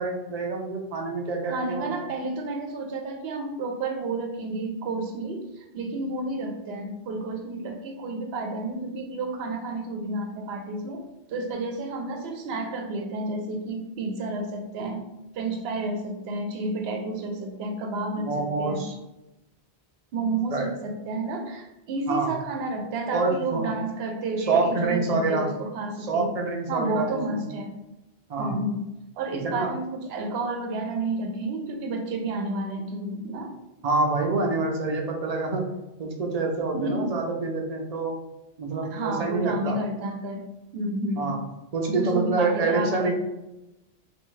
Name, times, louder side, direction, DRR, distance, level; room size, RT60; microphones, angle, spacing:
voice 1, 0.0-1.9 18.2-19.0 20.5-20.7 22.1-22.3 23.1-23.7 24.4-25.5 26.1-27.4 28.3-28.6 29.4-29.7 33.8-35.6 36.0-38.2 38.6-39.8 41.2-41.4 41.7-43.1, right 3 dB, 45° right, 2 dB, 0.6 m, -26 dB
voice 2, 1.5-11.0 11.3-15.0 15.3-18.9 20.1-26.3 26.7-27.7 28.4-28.8 29.2-33.5 36.7-37.1 38.9-40.4 40.7-41.3 41.9-43.1, right 2 dB, 75° right, 4 dB, 0.8 m, -31 dB
3.4 x 2.6 x 3.1 m, 0.95 s
omnidirectional pair, 1.1 m